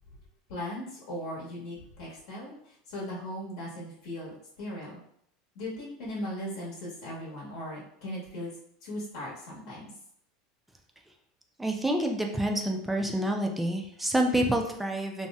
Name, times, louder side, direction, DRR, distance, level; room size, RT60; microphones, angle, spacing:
voice 1, 0.5-5.0 5.5-8.5 8.8-9.9, left 1 dB, 70° left, -5 dB, 1.0 m, -38 dB
voice 2, 11.6-15.3, right 1 dB, 5° right, 3 dB, 0.3 m, -28 dB
2.6 x 2.0 x 3.4 m, 0.70 s
supercardioid pair, 155°, 3 cm